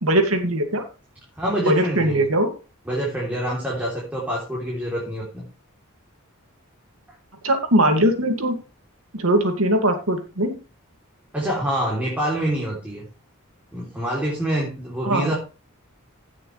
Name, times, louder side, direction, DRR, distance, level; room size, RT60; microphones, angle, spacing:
voice 1, 0.0-0.8 1.7-2.5 7.4-8.6 9.1-10.6 15.0-15.3, right 1 dB, 70° right, 5 dB, 2.3 m, -20 dB
voice 2, 1.3-2.2 2.8-5.4 11.3-13.0 13.7-15.3, equal, 5° right, -4 dB, 3.4 m, -26 dB
16.0 x 6.9 x 3.4 m, 0.32 s
head